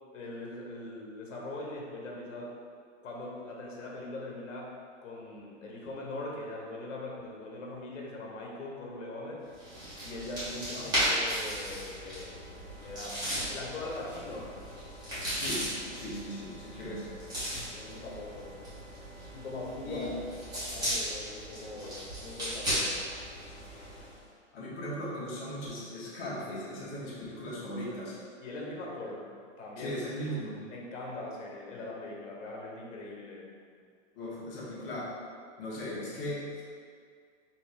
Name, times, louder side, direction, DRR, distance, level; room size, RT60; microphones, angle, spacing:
voice 1, 0.1-2.6 3.0-4.7 5.0-9.4 10.0-12.4 12.8-14.6 16.8-17.2 17.7-18.7 19.3-20.2 20.5-23.0 28.4-30.0 30.7-33.5, left 2 dB, 85° left, -2 dB, 1.1 m, -41 dB
sound 1, 9.5-24.2, equal, 10° right, 1.2 m, -36 dB
voice 2, 15.3-17.0 19.8-20.1 24.5-28.1 29.8-30.6 34.1-35.1 35.6-36.6, equal, 50° left, -6 dB, 1.4 m, -38 dB
4.5 x 2.8 x 3.4 m, 2.2 s
hypercardioid pair, 155°, 37 cm